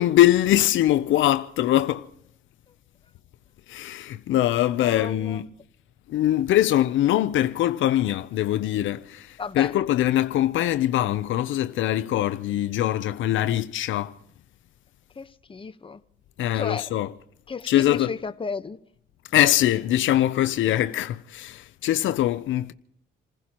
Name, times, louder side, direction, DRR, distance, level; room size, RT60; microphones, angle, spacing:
voice 1, 0.0-2.1 3.7-5.5 6.1-14.1 16.4-17.1 17.7-18.1 19.3-22.7, left 13 dB, 75° left, 0.6 m, -22 dB
voice 2, 4.8-5.4 9.4-9.7 15.1-16.0 16.5-16.9 17.5-18.8, left 5 dB, 25° left, 1.0 m, -34 dB
28.5 x 15.5 x 3.0 m
cardioid pair, 90°, 20 cm